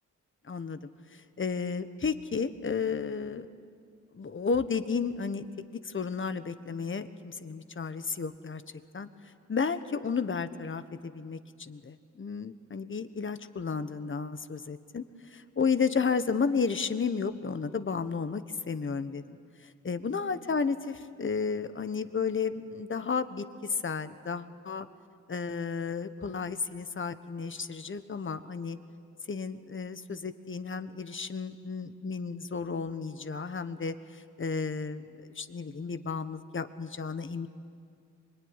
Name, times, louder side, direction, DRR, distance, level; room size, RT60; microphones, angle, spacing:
voice 1, 0.4-0.8 1.1-3.5 4.1-5.5 5.7-8.6 8.9-9.1 9.5-24.9 25.3-28.8 29.3-37.5, left 5 dB, 40° left, 11 dB, 1.3 m, -33 dB
25.0 x 22.0 x 9.9 m, 2.3 s
cardioid pair, 90°, 31 cm